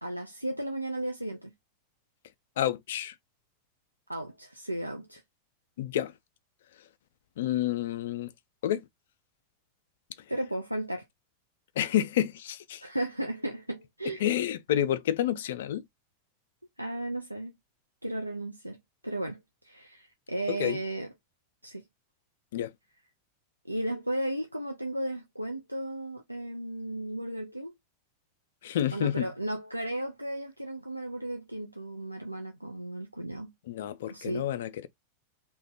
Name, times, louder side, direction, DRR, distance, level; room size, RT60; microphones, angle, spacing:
voice 1, 0.0-1.5 4.1-5.2 10.3-11.0 12.8-14.2 16.8-17.5 18.0-18.8 19.0-19.4 19.6-21.1 21.6-21.8 23.7-27.7 28.9-33.5 34.1-34.4, right 1 dB, 90° right, 0.4 m, -34 dB
voice 2, 2.6-3.1 5.8-6.1 7.4-8.3 8.6-8.8 11.8-12.8 14.2-15.8 20.5-20.8 22.5-22.7 28.6-29.3 33.7-34.9, left 11 dB, 60° left, 0.4 m, -29 dB
2.8 x 2.2 x 3.9 m
figure-of-eight pair, 90°, 0 cm